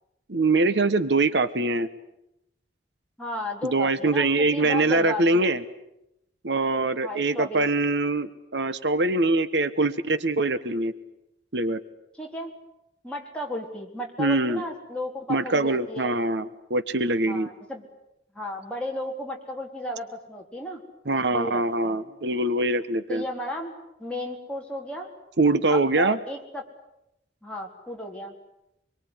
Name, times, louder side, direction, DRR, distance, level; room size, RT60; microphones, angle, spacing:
voice 1, 0.3-1.9 3.6-5.6 6.4-10.9 11.5-11.8 14.2-14.6 15.3-17.5 21.1-23.2 25.4-26.2, right 2 dB, 80° right, 13 dB, 1.3 m, -23 dB
voice 2, 3.2-5.5 7.0-7.7 12.2-12.5 13.0-16.1 17.3-17.8 18.3-20.8 21.3-22.0 23.1-23.7 24.0-25.1 25.7-26.6 27.4-28.3, left 1 dB, 5° left, -1 dB, 3.9 m, -34 dB
25.0 x 23.0 x 9.8 m, 0.85 s
head